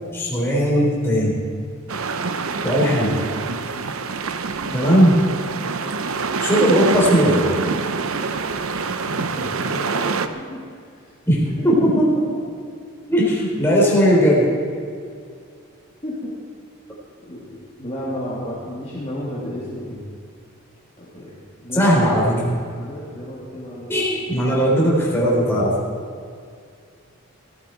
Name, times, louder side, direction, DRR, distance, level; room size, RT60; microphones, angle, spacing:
voice 1, 0.1-1.4 2.6-3.2 4.7-5.2 6.4-7.5 11.3-12.3 13.1-14.5 21.7-22.6 23.9-25.8, equal, 10° left, -4 dB, 3.8 m, -18 dB
sound 1, 1.9-10.3, right 4 dB, 75° right, 0.8 m, -25 dB
voice 2, 9.1-10.6 11.6-11.7 13.1-13.3 16.0-16.3 17.2-20.0 21.0-22.3 22.7-24.0, equal, 30° left, -8 dB, 2.7 m, -33 dB
17.5 x 15.0 x 4.6 m, 2.3 s
head